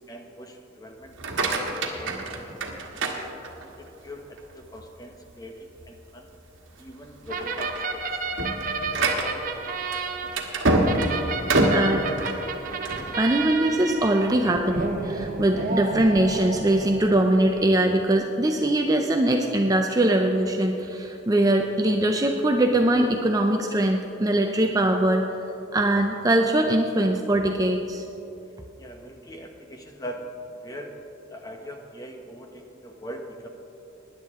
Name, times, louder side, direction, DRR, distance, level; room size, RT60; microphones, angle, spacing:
voice 1, 0.0-2.5 2.9-3.3 3.8-6.3 6.8-8.0 28.8-30.3 30.6-31.0 31.3-33.5, equal, 20° left, 3 dB, 0.9 m, -41 dB
sound 1, 1.1-3.9 4.4-4.8 5.3-5.4 5.8-6.0 6.6-6.9 7.3-13.1, right 2 dB, 70° right, 1.5 m, -26 dB
sound 2, 7.3-17.6, right 4 dB, 40° right, 0.8 m, -32 dB
voice 2, 11.6-12.0 13.1-25.2 25.7-28.0, right 1 dB, 20° right, 3 dB, 0.5 m, -22 dB
19.5 x 10.0 x 3.6 m, 3.0 s
head